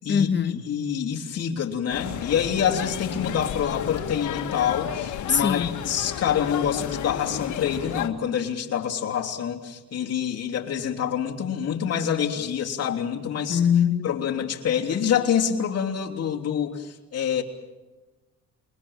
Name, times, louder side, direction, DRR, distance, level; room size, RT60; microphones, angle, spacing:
voice 1, 0.1-0.6 5.3-5.8 13.5-14.2, left 7 dB, 40° left, 10 dB, 1.3 m, -22 dB
voice 2, 0.7-13.6 14.0-17.4, left 8 dB, 55° left, 0 dB, 3.2 m, -26 dB
sound 1, 1.9-8.1, left 10 dB, 75° left, 1.7 m, -32 dB
28.0 x 22.0 x 7.3 m, 1.1 s
cardioid pair, 90°, 30 cm